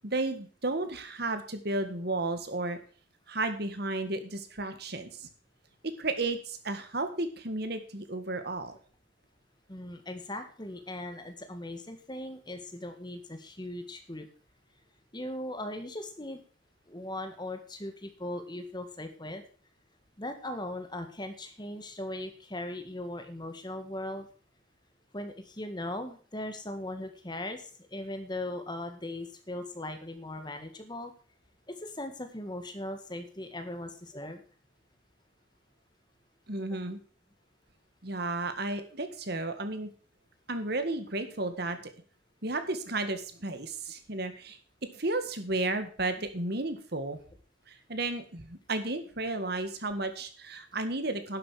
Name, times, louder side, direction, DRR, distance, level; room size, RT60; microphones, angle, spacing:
voice 1, 0.0-2.8 3.3-5.3 5.8-8.7 36.5-37.0 38.0-39.9 40.5-41.8 42.4-44.6 44.9-47.2 47.7-51.4, right 2 dB, 55° right, 9 dB, 1.8 m, -33 dB
voice 2, 9.7-14.3 15.1-16.4 16.9-19.4 20.2-24.3 25.1-31.1 31.7-34.4, left 1 dB, 20° left, 7 dB, 1.8 m, -39 dB
11.5 x 7.6 x 6.4 m, 0.41 s
head